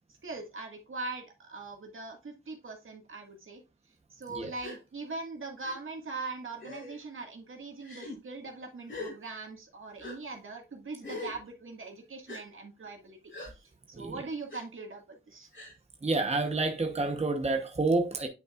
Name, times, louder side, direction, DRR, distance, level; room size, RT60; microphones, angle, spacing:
voice 1, 0.2-3.6 4.1-13.2 13.5-15.5, right 3 dB, 75° right, 1.8 m, -41 dB
Gasp, 4.6-4.8 5.6-5.8 6.6-7.0 7.8-8.2 8.9-9.1 10.0-10.2 11.0-11.4 12.3-12.4 13.3-13.5 14.5-14.6 15.5-15.7, left 2 dB, 65° left, 3.9 m, -41 dB
voice 2, 16.0-18.3, right 3 dB, 30° right, 1.0 m, -28 dB
9.3 x 5.4 x 2.4 m
wide cardioid pair, 95°, 21 cm